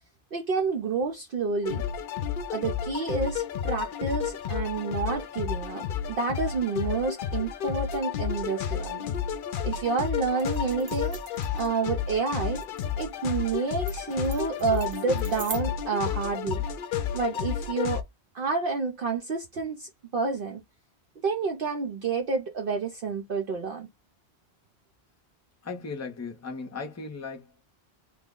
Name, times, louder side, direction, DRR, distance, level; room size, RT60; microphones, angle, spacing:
voice 1, 0.3-1.8 2.5-9.1 9.6-11.2 11.5-12.6 13.0-16.6 17.1-18.0 18.3-20.6 21.2-23.9, right 4 dB, 60° right, 0.8 m, -29 dB
sound 1, 1.6-18.0, left 8 dB, 60° left, 0.6 m, -31 dB
sound 2, 10.4-15.6, right 5 dB, 90° right, 1.3 m, -43 dB
voice 2, 25.6-27.6, left 4 dB, 20° left, 0.5 m, -37 dB
3.3 x 2.0 x 3.6 m
omnidirectional pair, 1.1 m